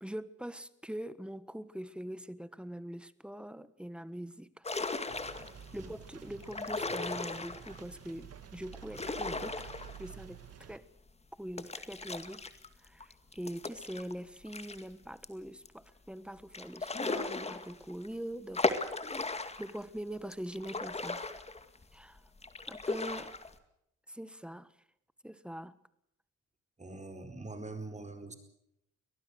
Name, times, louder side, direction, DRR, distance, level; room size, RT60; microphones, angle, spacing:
voice 1, 0.0-4.7 5.7-10.8 11.4-12.4 12.8-19.1 19.6-21.2 21.9-22.2 22.7-23.3 24.1-24.7 25.2-25.8, right 1 dB, 5° right, 15 dB, 1.3 m, -43 dB
sound 1, 4.6-5.7 6.4-7.8 8.7-10.3 10.6-10.7 11.6-14.8 15.2-15.3 15.6-15.7 16.5-18.1 18.5-19.8 20.3-21.9 22.4-23.5, left 3 dB, 20° left, 2.2 m, -36 dB
sound 2, 5.1-10.8, right 9 dB, 55° right, 2.3 m, -50 dB
voice 2, 26.8-28.3, right 2 dB, 25° right, 8 dB, 4.7 m, -43 dB
23.5 x 19.0 x 6.5 m, 0.79 s
cardioid pair, 90°, 30 cm